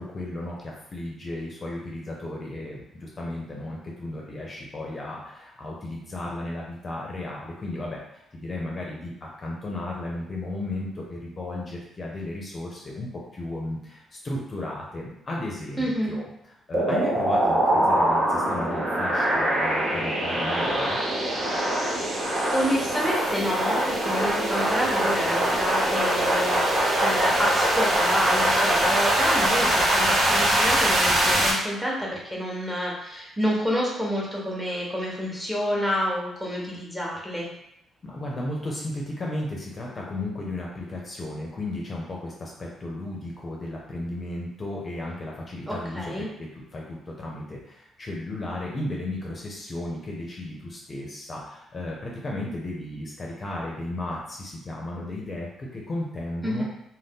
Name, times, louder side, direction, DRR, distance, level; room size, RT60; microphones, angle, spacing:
voice 1, 0.0-16.2 16.7-21.0 38.0-56.6, left 1 dB, 35° left, -3 dB, 0.6 m, -34 dB
voice 2, 15.8-16.2 22.5-37.5 45.7-46.3 56.4-56.6, equal, 5° right, -4 dB, 1.0 m, -28 dB
sound 1, 16.7-31.5, right 1 dB, 55° right, 0.8 m, -23 dB
2.6 x 2.2 x 3.5 m, 0.81 s
cardioid pair, 90°, 0 cm